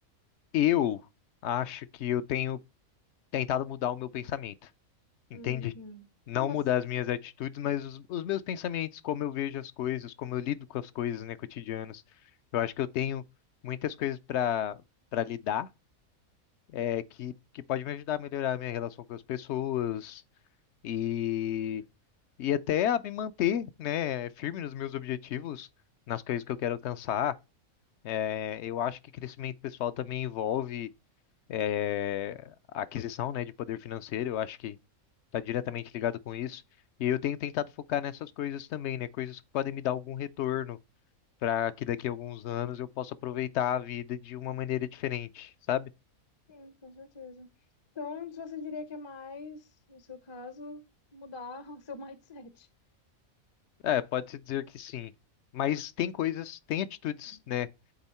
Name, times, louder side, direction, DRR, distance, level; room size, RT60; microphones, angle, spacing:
voice 1, 0.5-1.1 1.4-2.6 3.3-4.7 5.3-5.7 6.3-12.0 12.5-13.2 13.6-14.8 15.1-15.7 16.7-20.2 20.8-21.8 22.4-25.7 26.1-27.3 28.0-30.9 31.5-34.8 35.3-36.6 37.0-40.8 41.4-45.9 53.8-55.1 55.5-57.7, left 11 dB, 65° left, 0.7 m, -32 dB
voice 2, 5.3-6.1 6.3-6.6 46.5-47.5 47.9-50.8 51.1-52.7, left 4 dB, 30° left, 0.5 m, -42 dB
8.1 x 3.5 x 4.2 m
omnidirectional pair, 1.5 m